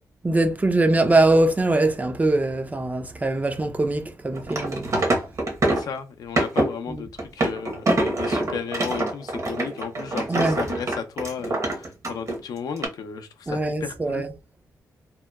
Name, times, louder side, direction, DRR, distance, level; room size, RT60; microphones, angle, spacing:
voice 1, 0.2-4.9 6.9-7.0 10.3-10.6 13.5-14.3, right 2 dB, 25° right, 0.4 m, -22 dB
sound 1, 4.3-6.0 6.4-6.7 7.2-12.4 12.8-12.9, right 2 dB, 50° right, 0.8 m, -25 dB
voice 2, 5.6-14.2, left 6 dB, 70° left, 0.4 m, -34 dB
2.8 x 2.1 x 2.2 m
cardioid pair, 65°, 7 cm